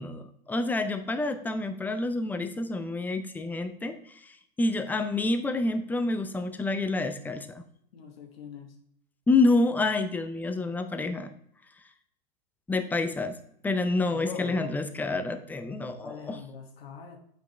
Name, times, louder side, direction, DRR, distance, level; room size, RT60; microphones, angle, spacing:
voice 1, 0.0-3.9 4.6-7.6 9.3-11.3 12.7-13.4 13.6-16.4, left 2 dB, 5° left, 9 dB, 0.4 m, -28 dB
voice 2, 7.9-8.8 14.1-14.8 16.0-17.2, left 6 dB, 75° left, 2 dB, 1.2 m, -42 dB
8.3 x 5.2 x 3.2 m, 0.69 s
hypercardioid pair, 110°, 30 cm